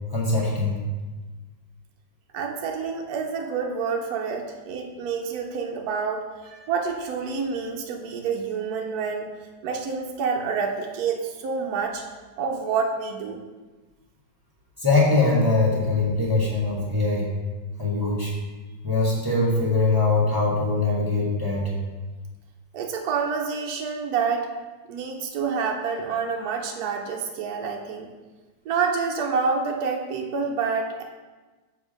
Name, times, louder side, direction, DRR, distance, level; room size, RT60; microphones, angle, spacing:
voice 1, 0.1-0.8 14.8-17.3 17.8-18.3 18.8-21.7, left 3 dB, 15° right, -5 dB, 0.9 m, -22 dB
voice 2, 2.3-9.3 9.6-12.1 12.4-13.4 22.7-24.5 24.9-28.1 28.6-31.0, right 5 dB, 70° right, 2 dB, 1.0 m, -28 dB
6.9 x 3.5 x 5.0 m, 1.3 s
omnidirectional pair, 2.0 m